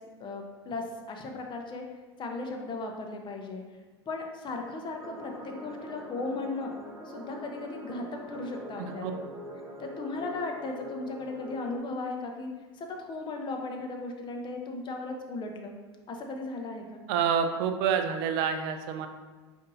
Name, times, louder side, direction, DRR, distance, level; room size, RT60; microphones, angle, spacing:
voice 1, 0.2-1.8 2.2-3.6 4.1-6.7 7.1-9.2 9.8-12.5 12.7-15.7 16.1-17.0, left 3 dB, 35° left, 2 dB, 0.7 m, -36 dB
sound 1, 5.0-11.8, equal, 20° right, 0.7 m, -44 dB
voice 2, 8.8-9.1 17.1-19.1, right 7 dB, 60° right, 7 dB, 0.4 m, -28 dB
5.3 x 2.6 x 2.6 m, 1.3 s
hypercardioid pair, 95°, 14 cm